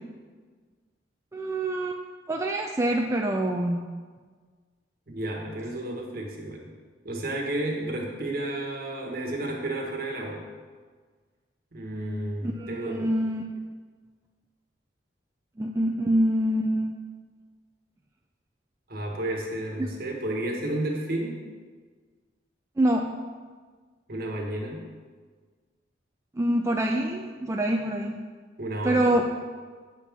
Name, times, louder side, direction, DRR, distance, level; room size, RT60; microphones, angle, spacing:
voice 1, 1.3-2.0 2.3-3.8 12.4-13.4 15.6-17.0 22.8-23.1 26.4-28.2 28.8-29.3, right 1 dB, 15° right, 1 dB, 0.3 m, -25 dB
voice 2, 5.1-6.7 7.0-10.4 11.7-13.1 18.9-21.5 24.1-24.8 28.6-29.0, right 1 dB, 55° right, 0 dB, 1.3 m, -32 dB
9.1 x 3.6 x 5.9 m, 1.5 s
head